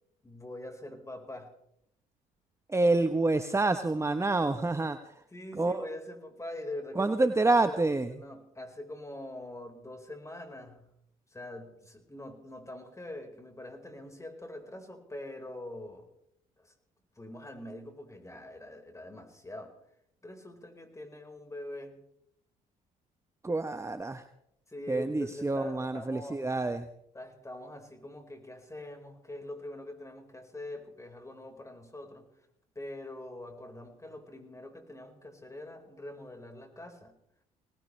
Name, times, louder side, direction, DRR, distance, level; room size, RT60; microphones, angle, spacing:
voice 1, 0.2-1.5 5.3-7.3 7.6-10.9 11.3-16.1 16.6-16.7 17.1-19.8 20.2-22.1 24.7-26.4 27.1-32.5 32.7-37.2, left 1 dB, 15° left, 3 dB, 4.7 m, -44 dB
voice 2, 2.7-5.2 5.5-5.8 7.0-8.1 23.4-24.2 24.9-26.9, right 2 dB, 15° right, 9 dB, 1.0 m, -28 dB
23.0 x 19.0 x 3.3 m, 0.76 s
hypercardioid pair, 60°, 19 cm